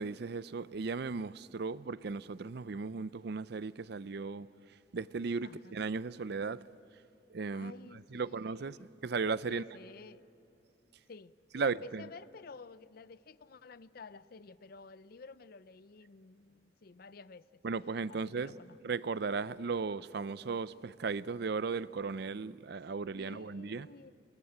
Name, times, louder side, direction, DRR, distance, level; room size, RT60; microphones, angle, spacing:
voice 1, 0.0-4.5 4.9-6.7 7.3-7.7 8.1-9.6 11.5-12.1 17.6-18.5 18.8-23.9, right 4 dB, 60° right, 0.5 m, -36 dB
voice 2, 5.4-5.8 7.5-8.9 9.5-10.2 11.1-17.6 18.1-18.8 23.2-24.1, left 4 dB, 55° left, 0.5 m, -52 dB
26.0 x 21.0 x 8.8 m
head